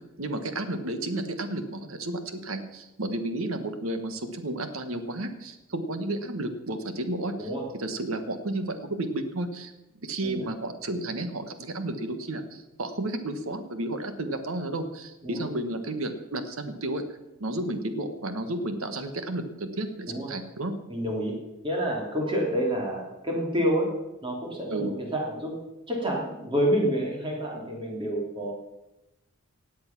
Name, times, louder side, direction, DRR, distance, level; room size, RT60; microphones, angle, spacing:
voice 1, 0.2-7.5 7.8-9.7 10.0-17.0 17.4-20.7 24.7-24.9, right 1 dB, 75° right, 8 dB, 1.4 m, -32 dB
voice 2, 20.9-21.3 21.6-23.9 24.2-25.6 25.9-28.5, equal, 25° right, -1 dB, 3.1 m, -28 dB
16.5 x 8.4 x 6.0 m, 0.99 s
head